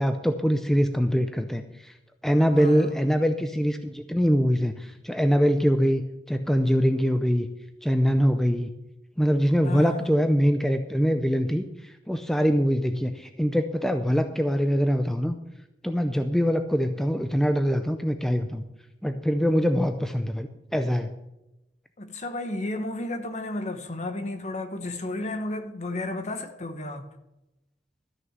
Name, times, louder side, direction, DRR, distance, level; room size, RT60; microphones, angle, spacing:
voice 1, 0.0-1.9 2.2-7.5 7.8-8.7 9.2-15.4 15.8-18.6 19.0-21.1, equal, ahead, 0.5 m, -23 dB
voice 2, 2.5-2.9 9.6-10.1 22.0-27.1, left 2 dB, 40° left, 1.2 m, -32 dB
13.5 x 6.3 x 7.4 m
head